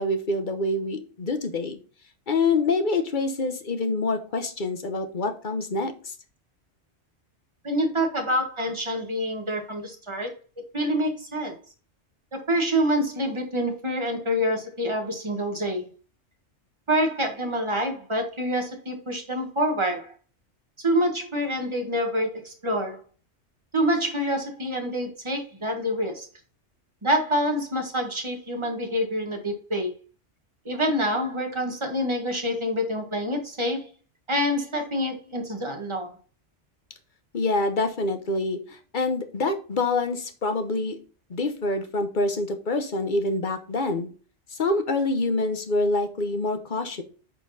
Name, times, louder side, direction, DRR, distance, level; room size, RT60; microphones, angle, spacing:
voice 1, 0.0-1.8 2.3-6.1 37.3-41.0 41.3-44.1 44.5-47.0, left 2 dB, 45° left, 7 dB, 1.1 m, -26 dB
voice 2, 7.6-10.3 10.7-11.5 12.3-15.9 16.9-20.1 20.8-23.0 23.7-26.3 27.0-29.9 30.6-33.9 34.3-36.1, equal, 25° right, 3 dB, 1.5 m, -26 dB
8.8 x 4.5 x 4.1 m, 0.38 s
omnidirectional pair, 1.2 m